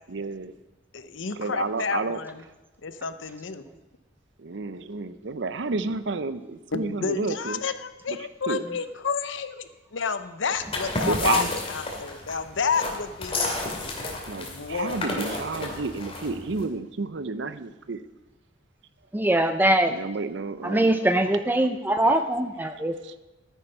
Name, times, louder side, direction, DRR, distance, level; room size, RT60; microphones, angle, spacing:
voice 1, 0.1-0.5 1.3-2.2 4.4-7.6 8.1-8.2 8.5-8.6 11.1-11.5 14.3-18.0 19.9-20.9 23.0-23.1, right 4 dB, 65° right, 13 dB, 0.6 m, -30 dB
voice 2, 0.9-2.4 2.8-3.6 6.7-11.4 11.7-13.5 14.4-15.0, left 5 dB, 80° left, 12 dB, 0.7 m, -30 dB
sound 1, 10.6-16.6, left 2 dB, 30° left, 2.4 m, -32 dB
voice 3, 19.1-19.9 20.6-23.0, right 1 dB, 10° right, 8 dB, 0.5 m, -22 dB
13.0 x 9.2 x 5.6 m, 1.1 s
head